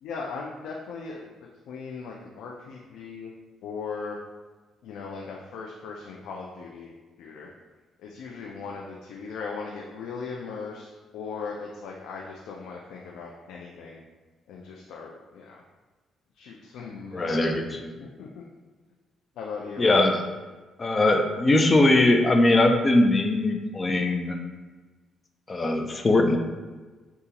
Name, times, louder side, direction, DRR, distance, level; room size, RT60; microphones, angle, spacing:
voice 1, 0.0-1.3 1.7-3.3 3.6-4.2 4.8-7.5 8.0-10.9 11.1-14.0 14.5-15.6 16.3-18.4 19.4-19.9, left 5 dB, 85° left, -1 dB, 0.4 m, -38 dB
voice 2, 17.1-17.9 19.8-20.2 20.8-24.4 25.5-26.4, left 2 dB, 30° left, 4 dB, 0.5 m, -21 dB
6.7 x 2.4 x 2.9 m, 1.3 s
cardioid pair, 90°, 0 cm